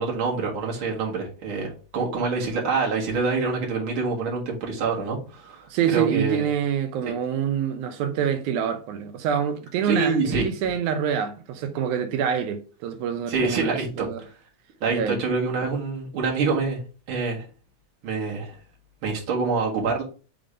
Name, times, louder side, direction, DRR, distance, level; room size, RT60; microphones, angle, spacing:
voice 1, 0.0-6.5 9.8-10.4 13.3-14.3 14.8-16.8 17.1-17.5 18.0-18.6 19.0-20.0, right 4 dB, 50° right, 2.2 m, -26 dB
voice 2, 5.7-14.2 14.9-15.2, right 8 dB, 85° right, 2.1 m, -26 dB
5.1 x 3.8 x 4.9 m
omnidirectional pair, 3.3 m